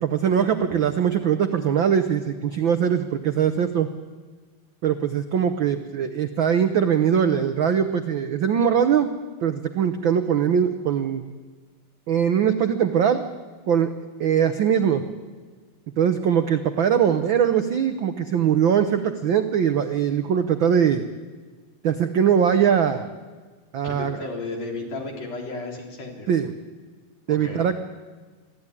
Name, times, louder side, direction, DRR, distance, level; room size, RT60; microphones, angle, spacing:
voice 1, 0.0-3.9 4.8-9.1 9.4-11.2 12.1-13.2 13.7-13.9 14.2-15.0 16.0-21.0 21.8-23.0 23.7-24.2 26.3-26.5 27.3-27.7, right 8 dB, 70° right, 9 dB, 1.1 m, -21 dB
voice 2, 23.8-26.3 27.3-27.7, left 3 dB, 60° left, 1 dB, 4.6 m, -34 dB
24.5 x 15.5 x 9.8 m, 1.4 s
omnidirectional pair, 3.4 m